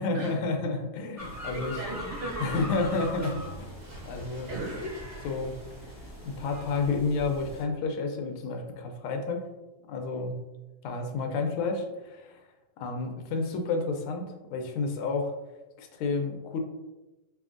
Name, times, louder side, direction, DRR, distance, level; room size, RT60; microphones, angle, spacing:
voice 1, 0.0-1.7 2.4-3.7 4.1-4.5 5.2-5.6 6.2-9.5 9.9-10.4 10.8-12.4 12.8-15.3 15.8-16.6, left 3 dB, 85° left, 4 dB, 1.5 m, -30 dB
sound 1, 1.2-7.6, equal, 15° right, 0.6 m, -41 dB
voice 2, 1.4-3.0 4.5-4.9, right 1 dB, 80° right, -2 dB, 1.8 m, -37 dB
Bird, 2.1-7.5 7.8-7.9, equal, 55° right, 1.9 m, -51 dB
4.4 x 3.4 x 2.4 m, 1.1 s
omnidirectional pair, 2.3 m